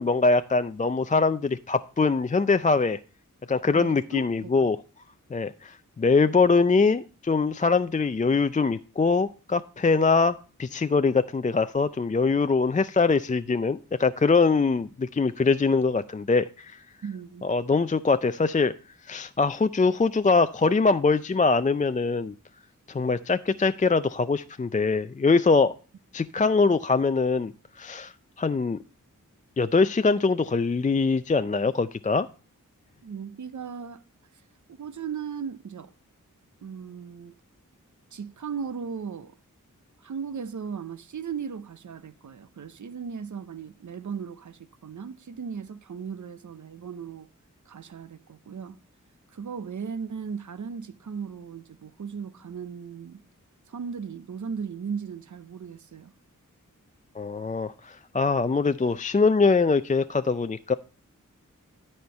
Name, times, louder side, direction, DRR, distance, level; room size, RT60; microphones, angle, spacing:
voice 1, 0.0-3.0 3.5-4.8 5.3-16.8 17.4-18.7 19.1-22.3 22.9-25.7 26.1-27.5 27.8-28.8 29.6-32.3 57.2-60.7, left 4 dB, 25° left, 0.4 m, -23 dB
voice 2, 3.7-4.7 17.0-17.5 33.0-34.0 34.7-35.9 36.6-37.3 38.1-39.4 40.0-47.3 47.7-48.8 49.3-53.2 53.7-56.1, right 6 dB, 65° right, 0.7 m, -37 dB
12.5 x 4.4 x 5.5 m
cardioid pair, 40°, 33 cm